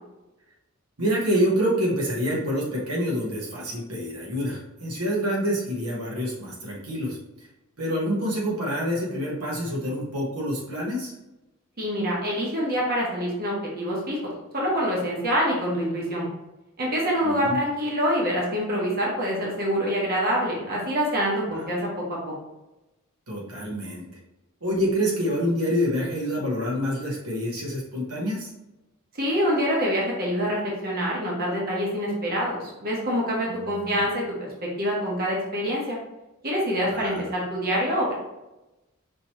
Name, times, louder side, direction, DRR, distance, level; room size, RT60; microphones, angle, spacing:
voice 1, 1.0-7.2 7.8-11.1 17.2-17.6 21.5-21.7 23.3-24.0 24.6-28.5 33.5-34.0 36.9-37.2, equal, 85° right, -4 dB, 1.3 m, -27 dB
voice 2, 11.8-16.3 16.8-22.0 29.2-36.0 36.4-38.1, equal, 45° right, -4 dB, 1.1 m, -26 dB
5.3 x 2.9 x 3.0 m, 1.0 s
head